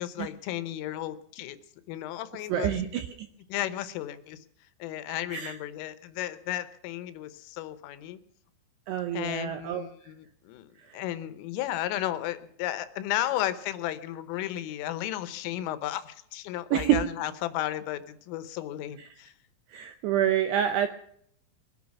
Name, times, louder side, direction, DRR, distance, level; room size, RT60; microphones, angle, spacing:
voice 1, 0.0-1.6 1.9-2.7 3.5-4.4 4.8-8.2 9.1-19.3, left 13 dB, 80° left, 13 dB, 3.4 m, -34 dB
voice 2, 2.5-3.1 5.3-5.6 8.9-9.8 10.9-11.0 16.7-17.0 19.7-20.9, right 11 dB, 80° right, 8 dB, 2.4 m, -27 dB
22.5 x 10.5 x 6.0 m, 0.67 s
omnidirectional pair, 5.9 m